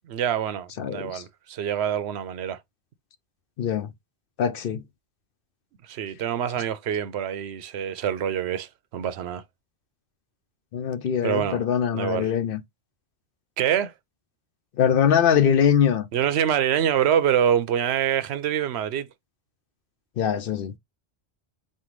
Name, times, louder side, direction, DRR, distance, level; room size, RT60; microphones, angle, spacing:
voice 1, 0.1-2.6 5.9-9.4 11.2-11.6 11.9-12.3 13.6-13.9 16.1-19.1, right 9 dB, 85° right, 0.9 m, -25 dB
voice 2, 0.8-1.2 3.6-3.9 4.4-4.8 10.7-12.6 14.8-16.1 20.2-20.7, left 8 dB, 65° left, 0.7 m, -22 dB
5.4 x 2.3 x 3.1 m
omnidirectional pair, 1.1 m